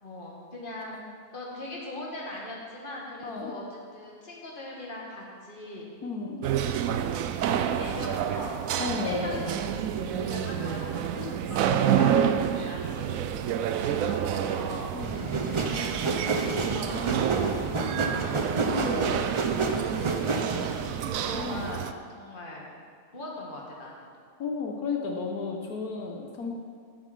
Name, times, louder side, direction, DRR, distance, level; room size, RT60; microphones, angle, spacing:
voice 1, 0.0-1.0 1.3-5.9 6.6-7.0 7.4-8.6 8.9-9.4 9.9-13.4 13.7-14.9 15.4-19.3 19.7-20.5 21.0-21.9 22.1-22.7 23.1-24.1, left 1 dB, 35° left, -3 dB, 2.3 m, -40 dB
voice 2, 3.2-3.5 6.0-6.4 8.8-9.4 11.2-11.4 11.9-12.7 14.9-15.3 18.7-19.3 20.9-21.1 21.3-21.8 24.4-26.5, left 4 dB, 85° left, 1 dB, 1.5 m, -34 dB
sound 1, 6.4-21.9, right 9 dB, 70° right, 1.0 m, -29 dB
sound 2, 15.0-21.1, right 3 dB, 40° right, 0.4 m, -29 dB
12.0 x 8.2 x 5.5 m, 2.1 s
omnidirectional pair, 1.5 m